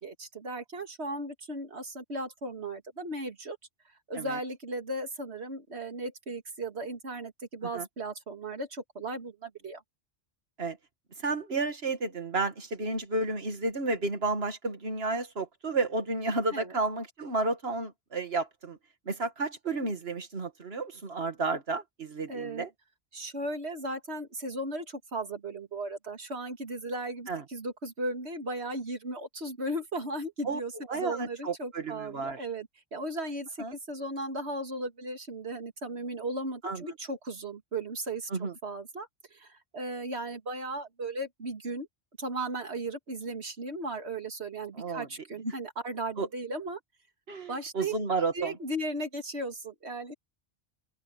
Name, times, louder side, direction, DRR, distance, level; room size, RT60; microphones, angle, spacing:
voice 1, 0.0-3.6 4.1-9.8 16.5-16.7 22.3-22.7 23.1-41.9 42.2-46.8 47.5-47.9 48.3-50.1, right 2 dB, 90° right, 2.7 m, -36 dB
voice 2, 11.2-18.8 19.1-22.7 27.3-27.4 30.4-30.6 30.9-32.4 33.6-33.7 36.6-36.8 38.3-38.5 44.8-45.1 45.4-45.5 46.2-46.3 47.3-48.6, right 3 dB, 75° right, 2.1 m, -32 dB
open air
omnidirectional pair, 1.1 m